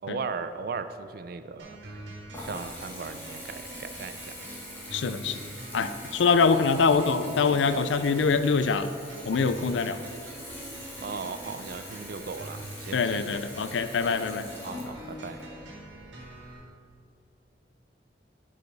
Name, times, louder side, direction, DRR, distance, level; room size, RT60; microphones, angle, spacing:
voice 1, 0.0-1.8 2.4-4.3 11.0-13.4 14.5-15.4, right 4 dB, 55° right, 11 dB, 0.4 m, -37 dB
sound 1, 1.6-16.6, right 2 dB, 85° right, 1.7 m, -45 dB
Water tap faucet / Bathtub (filling or washing) / Trickle dribble, 1.7-16.5, left 1 dB, 10° left, 1.7 m, -44 dB
voice 2, 4.9-5.4 5.7-8.9 9.3-10.0 12.9-14.5, left 5 dB, 85° left, 11 dB, 0.4 m, -24 dB
10.0 x 4.9 x 4.0 m, 2.5 s
head